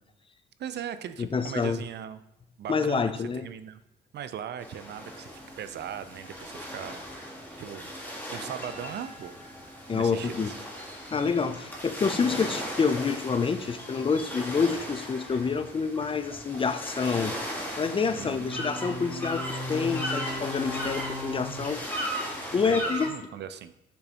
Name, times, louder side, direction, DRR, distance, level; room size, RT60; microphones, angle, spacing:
voice 1, 0.6-2.2 2.6-3.8 4.1-7.3 7.6-7.9 8.3-9.4 9.9-10.5 18.1-18.9 22.6-23.7, right 9 dB, 60° right, 12 dB, 0.5 m, -39 dB
voice 2, 1.2-1.8 2.7-3.4 9.9-10.5 11.1-17.4 17.8-23.1, left 5 dB, 25° left, 11 dB, 0.4 m, -28 dB
sound 1, 4.6-23.1, equal, 10° left, 1.6 m, -36 dB
6.6 x 5.5 x 2.9 m, 0.90 s
cardioid pair, 90°, 20 cm